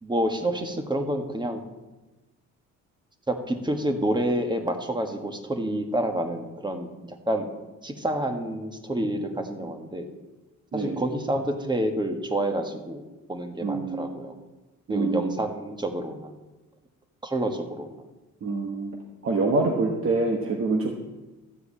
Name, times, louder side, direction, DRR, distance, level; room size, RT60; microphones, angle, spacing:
voice 1, 0.0-1.6 3.3-7.5 7.8-10.1 10.7-13.0 13.3-14.3 14.9-16.3 17.2-18.0, right 1 dB, 15° right, 5 dB, 1.5 m, -28 dB
voice 2, 10.7-11.0 13.6-14.1 14.9-15.3 18.4-18.9 19.2-20.9, right 3 dB, 45° right, 1 dB, 1.3 m, -25 dB
13.5 x 4.8 x 8.4 m, 1.1 s
cardioid pair, 90°, 30 cm